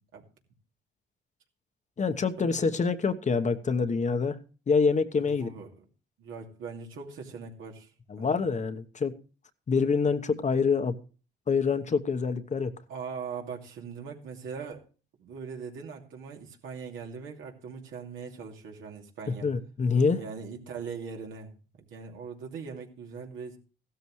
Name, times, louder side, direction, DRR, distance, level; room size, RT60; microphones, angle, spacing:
voice 1, 2.0-4.4 4.7-5.5 8.1-9.1 9.7-11.0 11.5-12.7 19.3-20.2, left 5 dB, 35° left, 9 dB, 1.1 m, -26 dB
voice 2, 5.2-5.8 6.2-7.9 8.2-8.4 12.9-14.8 15.2-19.5 20.2-23.6, right 5 dB, 80° right, 1 dB, 2.7 m, -41 dB
15.5 x 12.5 x 3.2 m, 0.37 s
cardioid pair, 90°, 20 cm